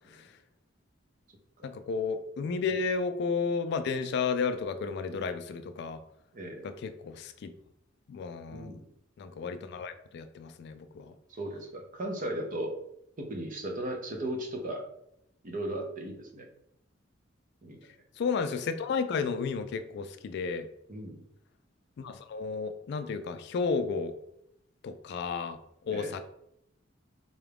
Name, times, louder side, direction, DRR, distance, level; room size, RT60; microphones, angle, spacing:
voice 1, 1.6-6.0 6.6-7.5 8.1-8.8 9.2-11.1 18.2-20.7 22.0-24.1 24.8-25.6 25.8-26.2, left 5 dB, 60° left, 10 dB, 0.3 m, -32 dB
voice 2, 6.3-6.7 8.5-8.8 11.3-12.8 13.2-14.8 15.4-16.5 17.6-17.8 20.9-21.2 25.9-26.1, right 1 dB, 45° right, 3 dB, 0.6 m, -36 dB
3.8 x 2.3 x 3.4 m, 0.78 s
head